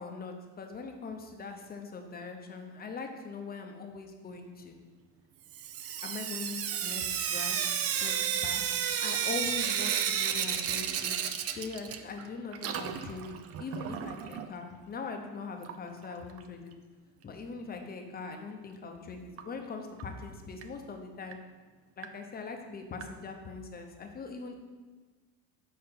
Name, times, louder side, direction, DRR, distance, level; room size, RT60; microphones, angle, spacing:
voice 1, 0.0-4.8 6.0-7.6 8.0-8.6 9.0-11.2 11.5-16.7 17.2-21.4 22.0-24.5, left 4 dB, 25° left, 4 dB, 0.8 m, -41 dB
Sink (filling or washing) / Drip, 5.5-12.3 12.5-14.5 15.6-15.7 16.0-16.1 16.4-16.5 19.4-19.5 20.0-20.1 20.6-20.7 21.3-21.4 22.0-22.1 23.0-23.1, right 9 dB, 40° right, 0.5 m, -32 dB
6.8 x 5.5 x 5.5 m, 1.3 s
cardioid pair, 150°, 39 cm